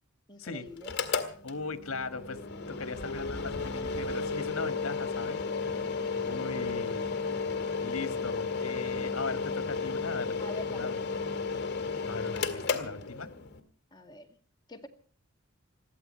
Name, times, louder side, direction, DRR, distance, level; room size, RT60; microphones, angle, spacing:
voice 1, 0.3-1.0 5.9-6.4 10.4-11.6 13.9-14.3 14.7-14.9, equal, 20° left, 3 dB, 2.0 m, -46 dB
Mechanical fan, 0.8-13.6, left 4 dB, 55° left, 2.1 m, -33 dB
voice 2, 1.4-2.4 2.7-5.4 6.2-7.1 7.8-10.4 10.7-11.0 12.0-13.3, left 4 dB, 75° left, 11 dB, 1.6 m, -38 dB
21.5 x 15.0 x 4.4 m, 0.43 s
head